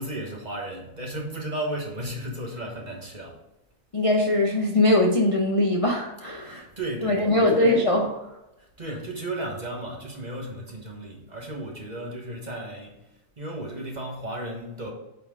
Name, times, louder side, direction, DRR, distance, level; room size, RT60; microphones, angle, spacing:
voice 1, 0.0-3.4 6.4-7.8 8.6-13.0 13.4-14.9, right 1 dB, 35° right, 1.4 m, -34 dB
voice 2, 3.9-6.7 7.0-8.4, left 1 dB, 30° left, 0.7 m, -22 dB
8.4 x 4.4 x 3.8 m
omnidirectional pair, 1.4 m